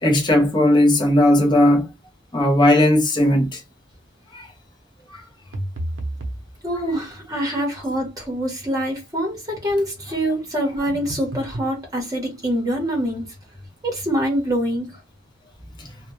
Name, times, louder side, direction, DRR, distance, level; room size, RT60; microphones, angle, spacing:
voice 1, 0.0-1.9 2.3-3.6 4.3-4.5 5.1-5.2 15.8-15.9, left 1 dB, 25° left, 0.6 m, -17 dB
sound 1, 5.5-6.4 10.9-11.7, right 1 dB, 70° right, 0.6 m, -30 dB
voice 2, 6.6-13.2 13.8-15.0, equal, 20° right, 0.9 m, -25 dB
2.1 x 2.1 x 3.0 m
head